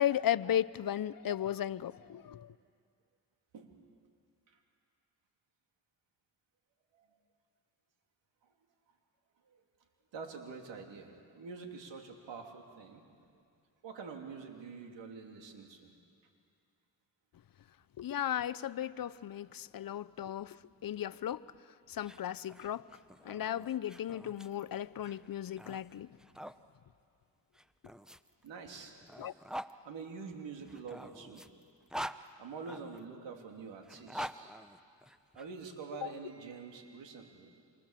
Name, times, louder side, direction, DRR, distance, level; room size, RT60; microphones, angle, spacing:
voice 1, 0.0-2.5 18.0-20.6 20.8-21.4 21.9-22.8 23.2-26.1 29.2-29.3 36.0-36.1, left 11 dB, 50° left, 0.7 m, -35 dB
voice 2, 10.1-13.1 13.8-15.9 28.4-28.9 29.8-31.4 32.4-34.5 35.3-37.6, right 5 dB, 80° right, 3.2 m, -46 dB
sound 1, 21.9-26.6 27.5-29.7 30.6-33.0 33.8-35.4, equal, ahead, 0.9 m, -45 dB
28.0 x 26.0 x 7.5 m
cardioid pair, 60°, 44 cm